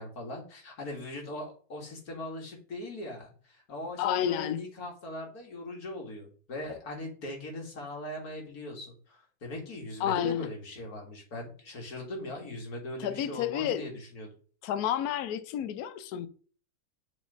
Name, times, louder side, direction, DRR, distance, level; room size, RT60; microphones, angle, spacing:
voice 1, 0.0-14.3, left 1 dB, 45° left, 2.1 m, -40 dB
voice 2, 4.0-4.6 10.0-10.5 13.0-13.9 14.6-16.3, left 10 dB, 75° left, 0.8 m, -30 dB
6.3 x 3.2 x 5.2 m
omnidirectional pair, 2.3 m